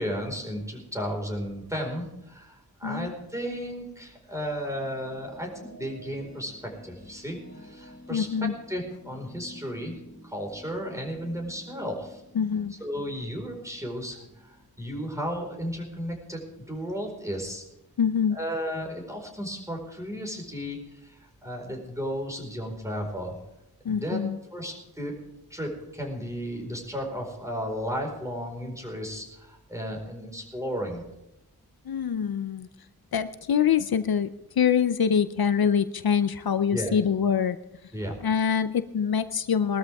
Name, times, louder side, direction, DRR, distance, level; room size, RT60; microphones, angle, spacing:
voice 1, 0.0-10.0 10.2-12.2 12.8-14.2 14.4-17.6 18.3-21.2 21.4-23.4 23.8-24.2 24.5-25.1 25.5-31.1 36.7-36.9 37.9-38.2, equal, 10° right, 1 dB, 4.8 m, -34 dB
sound 1, 4.1-15.4, left 1 dB, 35° left, 4.8 m, -50 dB
voice 2, 8.1-8.5 12.3-12.7 18.0-18.4 23.8-24.4 31.8-32.7 33.1-34.3 34.6-37.6 38.2-39.8, left 7 dB, 75° left, 12 dB, 0.7 m, -24 dB
21.0 x 13.0 x 3.5 m, 0.92 s
wide cardioid pair, 100°, 37 cm